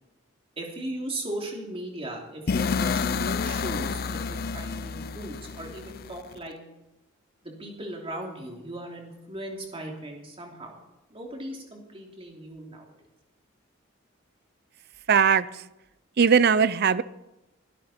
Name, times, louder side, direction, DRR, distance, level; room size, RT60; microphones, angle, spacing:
voice 1, 0.6-6.6 7.4-10.7 11.1-12.9, right 1 dB, 30° right, 0 dB, 3.2 m, -37 dB
sound 1, 2.5-6.4, left 5 dB, 50° left, 0.5 m, -29 dB
voice 2, 15.1-15.6 16.2-17.0, right 6 dB, 55° right, 17 dB, 0.6 m, -20 dB
22.5 x 12.0 x 4.4 m, 0.96 s
head